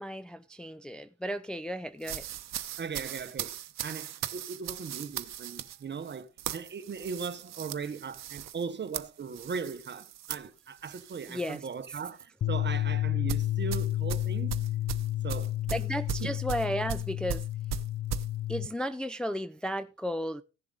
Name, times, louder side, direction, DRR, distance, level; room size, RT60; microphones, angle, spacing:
voice 1, 0.0-2.3 11.3-11.6 15.7-17.5 18.5-20.4, equal, 5° left, 0.4 m, -34 dB
sound 1, 2.0-11.6 11.9-12.2 13.3-18.3, right 11 dB, 60° right, 0.8 m, -38 dB
voice 2, 2.8-3.6 3.8-14.6 15.2-15.8 16.2-16.3, right 5 dB, 35° right, 1.0 m, -38 dB
sound 2, 12.4-18.7, left 14 dB, 45° left, 0.6 m, -31 dB
15.5 x 7.0 x 3.8 m
cardioid pair, 90°, 30 cm